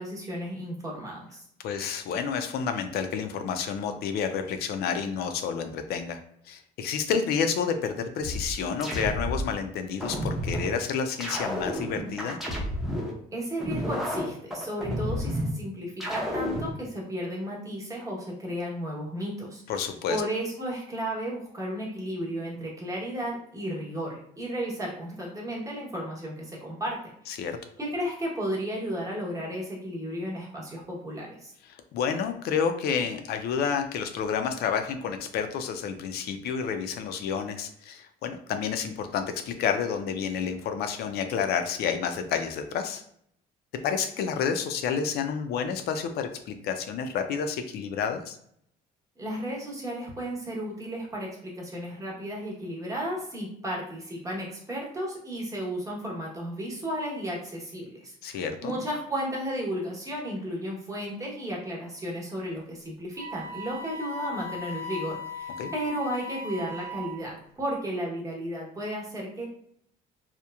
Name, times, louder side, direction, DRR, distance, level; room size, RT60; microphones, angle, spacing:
voice 1, 0.0-1.4 13.3-19.6 20.1-27.0 27.8-31.5 49.2-69.4, equal, 20° right, -3 dB, 0.9 m, -34 dB
voice 2, 1.6-6.2 6.5-12.4 19.7-20.2 27.3-27.6 31.9-43.0 43.8-48.4 58.2-58.7 65.6-65.7, left 6 dB, 70° left, 7 dB, 0.4 m, -30 dB
sound 1, 8.2-9.5 10.0-10.7 11.2-13.1 13.6-15.5 16.0-16.7, equal, ahead, 0.6 m, -31 dB
Wind instrument woodwind instrument, 63.2-67.3, left 3 dB, 60° right, 0.6 m, -38 dB
2.9 x 2.1 x 2.3 m, 0.69 s
cardioid pair, 110°, 17 cm